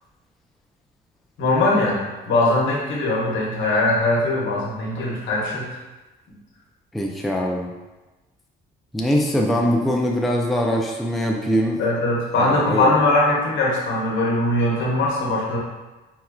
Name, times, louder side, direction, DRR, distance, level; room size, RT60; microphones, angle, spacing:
voice 1, 1.4-5.7 11.8-15.6, left 2 dB, 70° left, -4 dB, 1.0 m, -21 dB
voice 2, 6.9-7.7 8.9-11.8 12.4-12.9, equal, ahead, -1 dB, 0.3 m, -22 dB
4.3 x 2.3 x 2.2 m, 1.1 s
cardioid pair, 90°, 20 cm